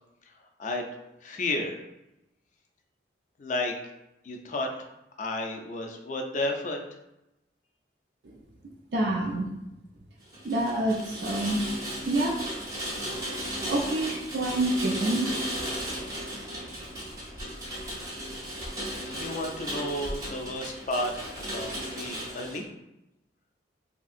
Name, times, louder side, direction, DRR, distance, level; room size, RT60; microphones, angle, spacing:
voice 1, 1.2-1.8 3.4-3.7 4.2-4.7 5.2-6.8 19.2-22.6, left 1 dB, 40° left, 3 dB, 0.4 m, -32 dB
voice 2, 8.9-9.5 10.4-11.6 12.1-12.4 13.7-15.3, right 1 dB, 65° right, 0 dB, 0.4 m, -27 dB
Rain, 10.3-22.6, equal, 20° right, 0.6 m, -35 dB
2.8 x 2.5 x 2.4 m, 0.91 s
head